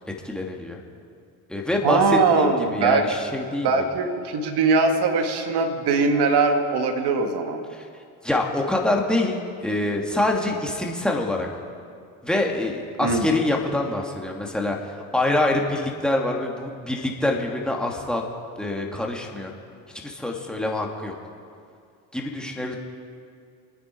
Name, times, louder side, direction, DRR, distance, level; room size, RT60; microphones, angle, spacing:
voice 1, 0.2-0.8 1.5-3.8 7.7-7.9 8.2-11.5 12.2-18.2 18.6-19.5 20.0-21.1 22.1-22.8, left 2 dB, ahead, -1 dB, 2.8 m, -25 dB
voice 2, 1.8-3.0 3.6-7.6 13.0-13.3, right 4 dB, 60° right, 5 dB, 2.0 m, -21 dB
26.0 x 9.5 x 4.9 m, 2.3 s
hypercardioid pair, 55°, 45 cm